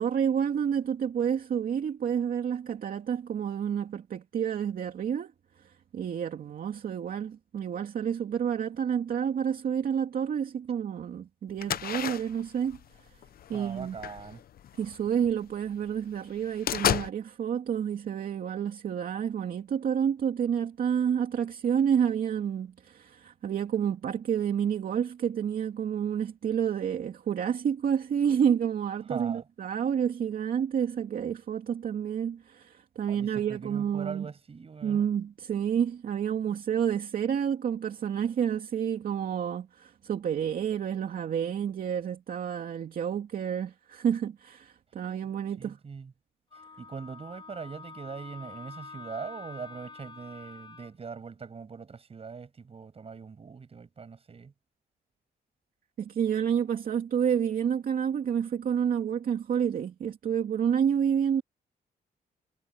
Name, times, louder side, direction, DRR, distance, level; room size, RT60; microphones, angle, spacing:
voice 1, 0.0-5.3 5.6-12.8 13.5-14.0 14.8-34.3 34.8-45.8 56.0-61.4, right 8 dB, 60° right, 2.5 m, -29 dB
sound 1, 11.6-15.4 15.8-15.9 16.2-17.1, left 10 dB, 65° left, 0.8 m, -32 dB
voice 2, 13.5-14.4 29.1-29.4 33.1-35.0 45.6-46.1 46.8-54.5, right 5 dB, 35° right, 7.8 m, -41 dB
Wind instrument woodwind instrument, 46.5-50.9, left 4 dB, 30° left, 6.5 m, -47 dB
cardioid pair, 125°, 16 cm